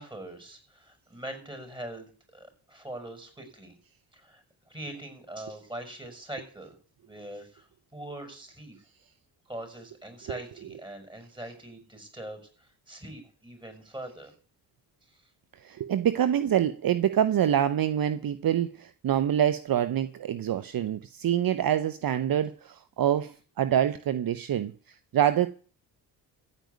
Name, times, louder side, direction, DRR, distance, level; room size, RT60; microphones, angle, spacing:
voice 1, 0.0-3.7 4.1-4.4 4.7-6.8 7.0-7.7 7.9-8.8 9.5-14.3, right 1 dB, 10° right, 6.1 m, -42 dB
voice 2, 15.6-24.7 25.1-25.5, right 10 dB, 55° right, 0.8 m, -26 dB
14.5 x 5.2 x 9.4 m
cardioid pair, 65°, 42 cm